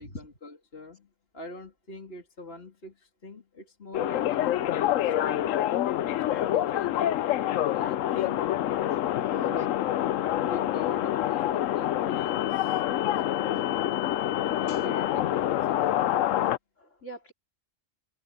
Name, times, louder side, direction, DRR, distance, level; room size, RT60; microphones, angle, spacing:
voice 1, 0.0-5.6 6.1-7.1 7.7-8.4 9.2-9.7 10.3-12.8 13.3-14.0 14.6-16.5, left 2 dB, 50° left, 3.1 m, -44 dB
sound 1, 3.9-16.6, left 12 dB, 85° left, 1.0 m, -26 dB
voice 2, 12.8-13.2 13.6-13.9 14.7-14.8 16.8-17.3, equal, 65° left, 4.4 m, -46 dB
omnidirectional pair, 1.3 m